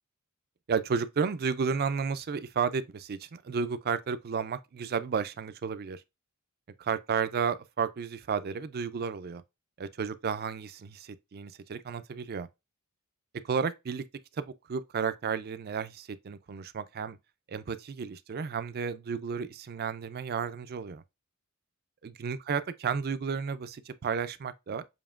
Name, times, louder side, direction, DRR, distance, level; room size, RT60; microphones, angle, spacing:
voice 1, 0.7-6.0 6.8-9.4 9.8-12.5 13.4-14.1 14.4-17.2 17.5-21.0 22.0-24.9, right 6 dB, 45° right, 0.4 m, -32 dB
7.0 x 2.8 x 2.4 m
head